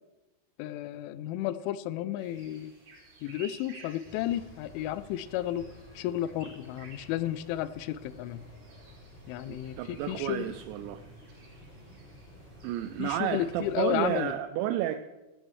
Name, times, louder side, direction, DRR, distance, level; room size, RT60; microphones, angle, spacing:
voice 1, 0.6-2.7 3.2-8.4 9.3-10.5 13.0-14.4, left 13 dB, 85° left, 15 dB, 3.0 m, -33 dB
sound 1, 2.2-14.2, right 3 dB, 50° right, 5.3 m, -55 dB
sound 2, 4.0-14.1, left 1 dB, 20° left, 1.7 m, -52 dB
voice 2, 9.5-11.0 12.6-15.1, right 12 dB, 85° right, 10 dB, 2.7 m, -31 dB
17.0 x 15.5 x 3.2 m, 1.1 s
omnidirectional pair, 5.5 m